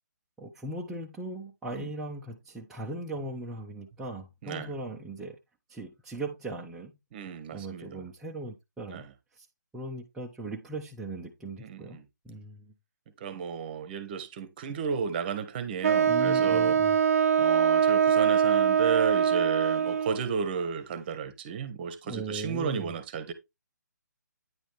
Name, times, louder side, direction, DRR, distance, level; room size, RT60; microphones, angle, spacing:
voice 1, 0.4-5.4 5.7-6.9 7.5-9.1 9.4-9.5 9.7-12.0 12.2-12.7 16.0-17.0 22.0-23.0, right 2 dB, 5° right, 0.7 m, -38 dB
voice 2, 7.1-8.0 8.9-9.1 11.6-12.0 13.2-16.8 17.4-23.3, right 6 dB, 30° right, 1.1 m, -33 dB
Wind instrument woodwind instrument, 15.8-20.3, right 8 dB, 50° right, 0.3 m, -23 dB
9.6 x 5.0 x 3.5 m
figure-of-eight pair, 140°, 10 cm